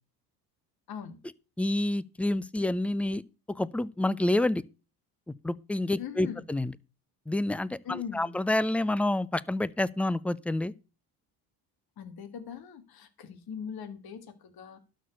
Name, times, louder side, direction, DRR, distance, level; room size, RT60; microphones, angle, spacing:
voice 1, 1.6-3.2 3.5-4.6 5.3-6.7 7.3-10.7, left 1 dB, 5° left, 0.4 m, -28 dB
voice 2, 6.0-6.4 7.8-8.3 12.0-14.8, left 7 dB, 50° left, 1.8 m, -40 dB
12.0 x 4.4 x 8.0 m
hypercardioid pair, 65°, 47 cm